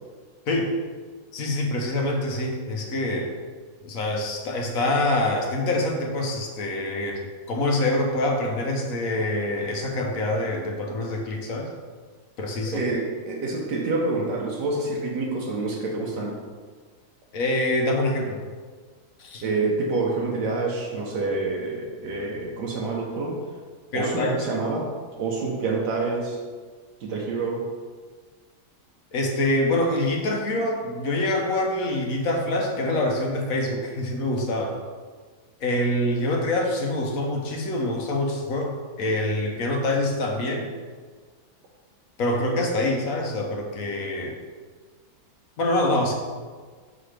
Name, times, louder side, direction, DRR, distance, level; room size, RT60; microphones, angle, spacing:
voice 1, 1.3-3.3 3.8-11.7 12.4-12.8 17.3-18.4 19.2-19.4 23.9-24.4 29.1-34.7 35.6-40.7 42.2-44.3 45.6-46.1, left 1 dB, 60° left, 1 dB, 1.1 m, -25 dB
voice 2, 12.6-16.4 19.4-23.4 23.9-24.9 25.2-26.4 27.0-27.6, right 3 dB, 75° right, -2 dB, 1.4 m, -27 dB
6.0 x 4.9 x 3.2 m, 1.5 s
omnidirectional pair, 1.8 m